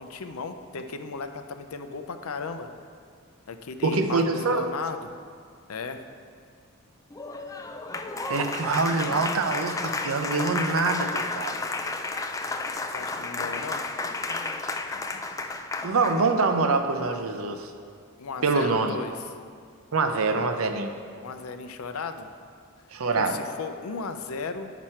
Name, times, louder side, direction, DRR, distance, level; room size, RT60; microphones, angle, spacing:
voice 1, 0.0-2.7 3.5-5.1 5.7-6.0 12.9-13.8 18.2-19.2 21.2-22.3 23.1-24.7, left 4 dB, 75° left, 8 dB, 0.5 m, -35 dB
voice 2, 3.8-4.6 8.3-11.5 15.8-17.7 18.4-19.0 19.9-20.9 22.9-23.4, right 3 dB, 70° right, 7 dB, 0.6 m, -25 dB
Applause, 7.1-16.3, left 3 dB, 15° left, 0.3 m, -32 dB
9.1 x 6.0 x 4.3 m, 2.1 s
head